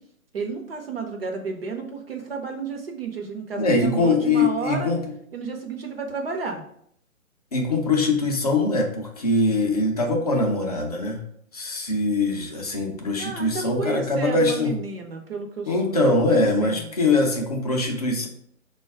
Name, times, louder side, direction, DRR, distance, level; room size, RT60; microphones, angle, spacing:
voice 1, 0.3-4.9 5.3-6.6 13.2-16.9, right 4 dB, 45° right, 2 dB, 0.7 m, -32 dB
voice 2, 3.6-5.0 7.5-11.2 11.5-14.7 15.7-18.3, left 2 dB, 30° left, 1 dB, 0.5 m, -22 dB
3.9 x 2.3 x 4.4 m, 0.68 s
hypercardioid pair, 150°, 41 cm